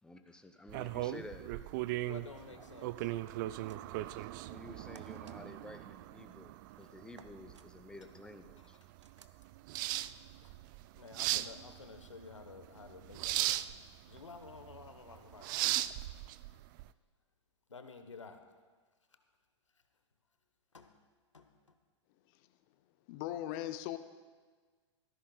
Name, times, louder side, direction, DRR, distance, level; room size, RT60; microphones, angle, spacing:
voice 1, 0.0-1.5 2.5-2.8 4.5-8.8, left 2 dB, 5° left, 7 dB, 0.8 m, -51 dB
sound 1, 0.7-16.9, right 16 dB, 40° right, 0.4 m, -38 dB
voice 2, 2.0-2.9 10.4-10.5 10.9-13.8 14.1-15.7 17.7-18.4 20.7-20.9 21.3-21.4, left 4 dB, 80° left, 7 dB, 1.2 m, -51 dB
sound 2, 3.5-4.1 5.0-5.4 7.2-7.7 9.0-9.4, right 7 dB, 75° right, 0.7 m, -59 dB
voice 3, 23.1-24.0, left 13 dB, 45° left, 10 dB, 0.7 m, -38 dB
17.5 x 14.0 x 2.4 m, 1.5 s
figure-of-eight pair, 100°, 15 cm